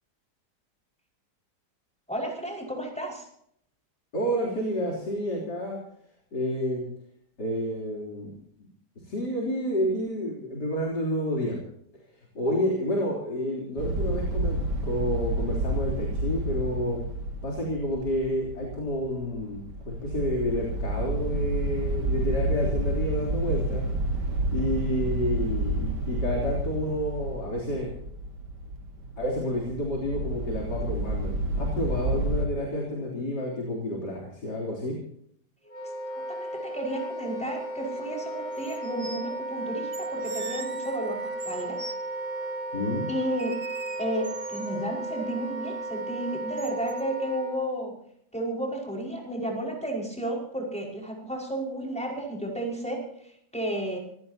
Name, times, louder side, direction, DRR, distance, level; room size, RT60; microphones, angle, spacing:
voice 1, 2.1-3.3 36.1-41.8 43.1-43.6 44.0-48.0 48.3-54.0, right 1 dB, 5° left, -1 dB, 5.2 m, -32 dB
voice 2, 4.1-5.8 6.3-6.8 7.4-8.3 9.1-11.6 12.3-14.6 14.8-17.0 17.4-23.8 24.5-27.9 29.2-31.3 31.6-34.9 42.7-43.1, equal, 75° left, -2 dB, 4.2 m, -29 dB
sound 1, 13.8-32.5, right 1 dB, 80° right, 2.3 m, -30 dB
Wind instrument woodwind instrument, 35.6-47.6, right 2 dB, 20° right, 7.6 m, -34 dB
sound 2, 37.9-38.0 38.5-39.2 39.9-42.0 43.4-44.7 46.6-47.0, right 4 dB, 50° right, 1.6 m, -42 dB
25.5 x 17.0 x 2.9 m, 0.68 s
omnidirectional pair, 1.8 m